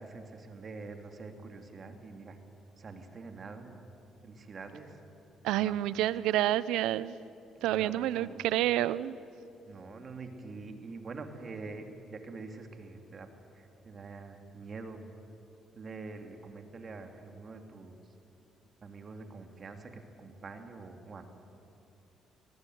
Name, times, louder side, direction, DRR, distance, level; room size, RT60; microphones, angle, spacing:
voice 1, 0.0-2.4 2.8-3.8 4.2-5.0 5.6-5.7 7.6-8.4 9.7-13.3 13.5-15.0 15.7-17.9 18.8-21.3, right 3 dB, 45° right, 6 dB, 2.7 m, -45 dB
voice 2, 5.4-7.2 7.6-9.2, right 13 dB, 90° right, 18 dB, 0.6 m, -29 dB
20.0 x 19.0 x 9.4 m, 2.8 s
cardioid pair, 80°, 0 cm